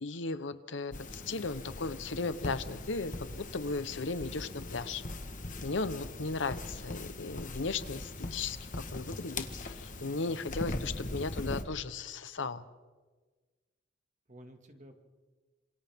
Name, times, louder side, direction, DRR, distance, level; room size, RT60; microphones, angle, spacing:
voice 1, 0.0-5.0 5.6-12.6, left 3 dB, 75° left, 12 dB, 0.9 m, -36 dB
sound 1, 0.9-11.6, left 2 dB, 45° left, 1.4 m, -41 dB
voice 2, 10.0-10.5 14.3-14.9, right 1 dB, 40° right, 5 dB, 2.2 m, -53 dB
26.5 x 26.5 x 3.6 m, 1.4 s
head